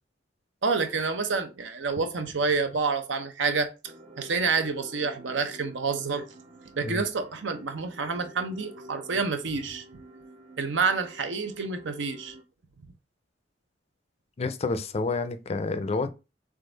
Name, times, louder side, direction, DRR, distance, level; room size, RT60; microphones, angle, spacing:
voice 1, 0.6-3.7 4.2-6.2 6.8-9.8 10.6-12.4, right 4 dB, 80° right, 0.7 m, -28 dB
sound 1, 3.8-12.4, equal, 35° right, 0.5 m, -49 dB
voice 2, 14.4-16.1, left 3 dB, 35° left, 0.4 m, -29 dB
3.7 x 3.4 x 3.8 m
head